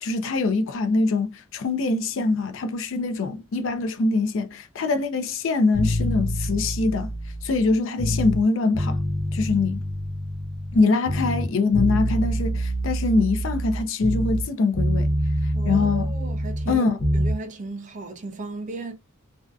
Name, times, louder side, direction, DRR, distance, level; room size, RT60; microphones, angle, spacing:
voice 1, 0.0-7.1 7.4-9.0 9.3-9.8 10.7-15.1 15.4-16.1 16.7-17.0, left 3 dB, 60° left, 0.4 m, -23 dB
sound 1, 5.7-8.4 8.7-10.8 11.0-14.5 14.7-17.4, equal, 45° left, 1.2 m, -26 dB
voice 2, 15.5-16.9 17.1-18.9, right 2 dB, 35° right, 0.4 m, -35 dB
2.5 x 2.3 x 2.2 m
head